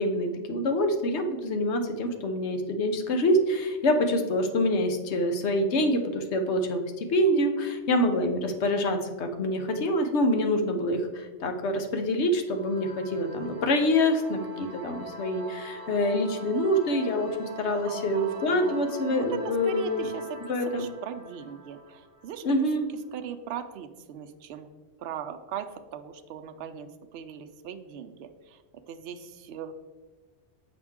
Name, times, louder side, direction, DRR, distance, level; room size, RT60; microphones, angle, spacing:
voice 1, 0.0-20.2 20.5-20.9 22.4-22.9, left 1 dB, 70° left, 5 dB, 1.1 m, -26 dB
sound 1, 12.5-22.8, right 2 dB, 35° right, 1.0 m, -43 dB
voice 2, 17.9-24.7 25.0-28.6 28.9-29.7, right 8 dB, 65° right, 8 dB, 0.8 m, -39 dB
7.2 x 5.9 x 3.6 m, 1.3 s
omnidirectional pair, 1.2 m